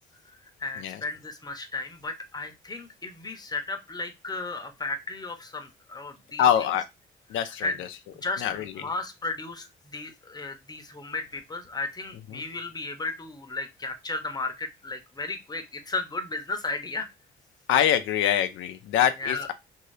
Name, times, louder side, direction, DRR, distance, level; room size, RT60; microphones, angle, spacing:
voice 1, 0.6-6.4 7.4-7.8 8.2-17.1 19.2-19.5, left 3 dB, 20° left, 0.8 m, -34 dB
voice 2, 6.4-6.8 7.3-7.9 8.4-8.7 12.3-12.4 17.7-19.5, left 10 dB, 80° left, 0.4 m, -24 dB
2.7 x 2.7 x 3.2 m
cardioid pair, 90°, 20 cm